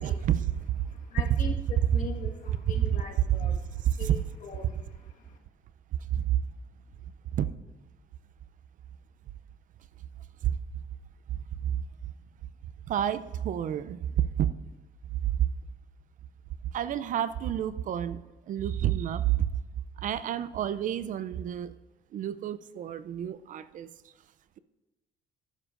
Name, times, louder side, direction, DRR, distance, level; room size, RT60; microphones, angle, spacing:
voice 1, 0.0-0.9 1.3-1.4 2.8-3.0 3.4-3.6 3.8-4.2 6.1-6.4 7.3-7.5 10.4-10.5 11.3-11.8 12.9-14.5 15.2-15.5 16.7-18.2 18.5-19.5 20.0-21.7 22.1-23.9, right 11 dB, 50° right, 14 dB, 0.4 m, -29 dB
voice 2, 0.8-5.4, left 5 dB, 50° left, 1 dB, 1.5 m, -42 dB
11.5 x 9.7 x 2.5 m, 1.1 s
cardioid pair, 110°, 17 cm